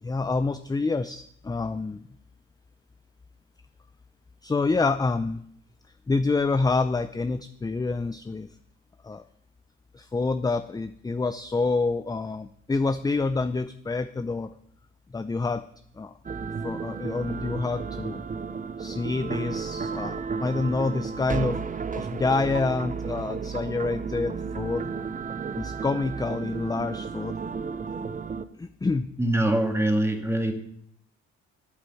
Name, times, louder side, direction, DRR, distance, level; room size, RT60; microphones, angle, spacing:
voice 1, 0.0-2.0 4.4-5.4 6.1-8.5 9.0-9.2 9.9-14.5 15.1-15.6 16.0-16.1 16.6-18.2 18.8-24.9 25.6-27.3 28.6-29.1, left 3 dB, 15° left, 10 dB, 0.5 m, -27 dB
sound 1, 16.2-28.4, right 5 dB, 25° right, 0.7 m, -33 dB
voice 2, 29.2-30.5, right 1 dB, 10° right, 4 dB, 2.1 m, -23 dB
8.3 x 8.3 x 7.7 m, 0.69 s
cardioid pair, 90°, 30 cm